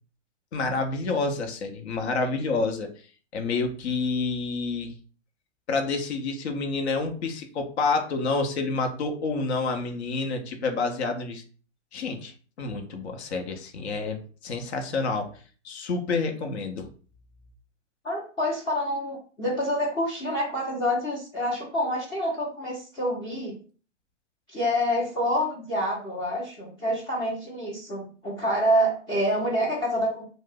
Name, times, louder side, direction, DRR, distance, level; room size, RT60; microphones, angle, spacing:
voice 1, 0.5-2.9 3.3-4.9 5.7-11.4 11.9-15.3 15.6-16.9, left 3 dB, 60° left, 5 dB, 0.7 m, -28 dB
voice 2, 18.0-23.5 24.5-30.2, equal, 15° left, -4 dB, 0.5 m, -27 dB
2.5 x 2.0 x 3.7 m, 0.40 s
figure-of-eight pair, 115°, 36 cm